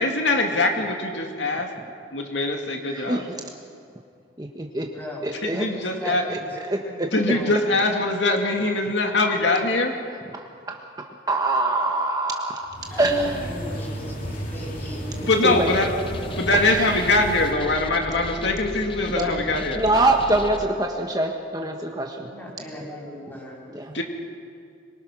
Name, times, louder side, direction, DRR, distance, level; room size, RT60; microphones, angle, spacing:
voice 1, 0.0-1.7 2.1-3.3 5.3-6.3 7.1-9.9 15.3-16.1 16.4-19.9 23.9-24.0, left 2 dB, 75° left, 3 dB, 2.3 m, -23 dB
voice 2, 2.9-3.3 4.4-4.9 5.2-5.7 6.0-6.4 6.7-7.1 10.3-12.7 13.0-13.5 15.4-15.7 16.6-17.0 19.2-19.4 19.8-22.3 23.7-23.9, right 2 dB, 20° right, 2 dB, 1.3 m, -25 dB
voice 3, 4.9-6.5 7.0-7.6 12.9-15.7 19.0-19.6 22.3-23.7, equal, 10° left, -2 dB, 6.3 m, -38 dB
sound 1, 12.6-17.5, equal, 45° left, 3.2 m, -34 dB
sound 2, 15.5-20.7, left 2 dB, 30° left, 0.7 m, -36 dB
26.5 x 23.5 x 6.2 m, 2.4 s
head